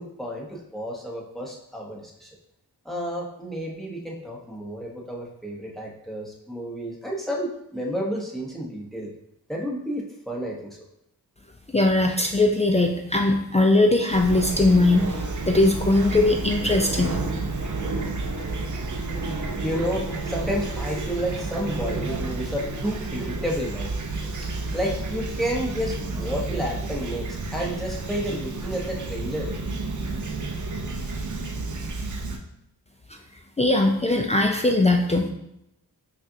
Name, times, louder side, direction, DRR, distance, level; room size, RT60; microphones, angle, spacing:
voice 1, 0.0-2.3 2.8-9.1 9.5-10.8 19.6-23.9 24.7-29.5, equal, ahead, -3 dB, 1.0 m, -31 dB
voice 2, 11.7-15.2 15.5-17.2 33.6-35.3, left 2 dB, 20° left, 2 dB, 0.4 m, -20 dB
Fowl / Chirp tweet, 14.1-32.4, right 3 dB, 50° right, 0.6 m, -31 dB
5.4 x 2.5 x 2.7 m, 0.80 s
cardioid pair, 55°, 38 cm